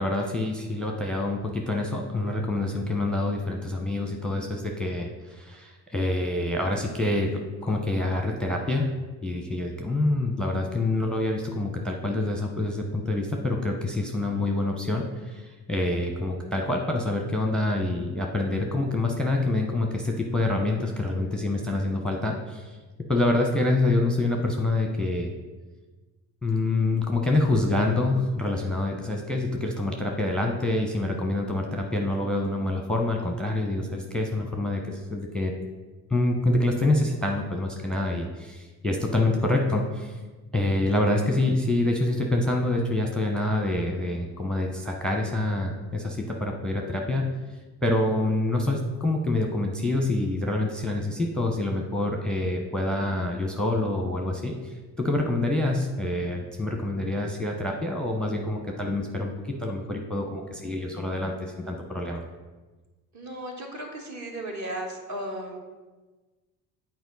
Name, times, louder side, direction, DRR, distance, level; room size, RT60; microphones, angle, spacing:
voice 1, 0.0-8.9 9.2-22.8 23.1-25.3 26.4-35.5 36.1-40.2 40.5-47.3 47.8-62.2, left 2 dB, ahead, 1 dB, 0.9 m, -26 dB
voice 2, 63.1-65.6, right 1 dB, 40° right, 1 dB, 1.6 m, -35 dB
8.2 x 4.4 x 4.0 m, 1.3 s
hypercardioid pair, 60°, 42 cm